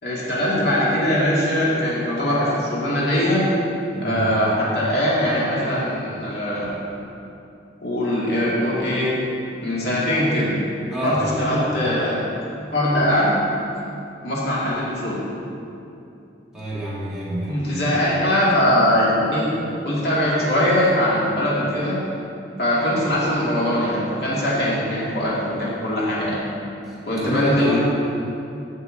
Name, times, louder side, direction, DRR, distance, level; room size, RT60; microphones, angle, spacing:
voice 1, 0.0-3.5 4.0-6.8 7.8-9.2 9.6-10.6 11.0-12.3 12.7-13.4 14.2-15.2 17.5-22.0 22.6-26.4 27.1-27.8, left 1 dB, 60° left, -7 dB, 2.2 m, -21 dB
voice 2, 3.9-4.2 10.9-11.2 16.5-17.7 26.8-27.8, right 1 dB, 5° right, -11 dB, 1.9 m, -28 dB
15.0 x 5.5 x 3.9 m, 2.7 s
head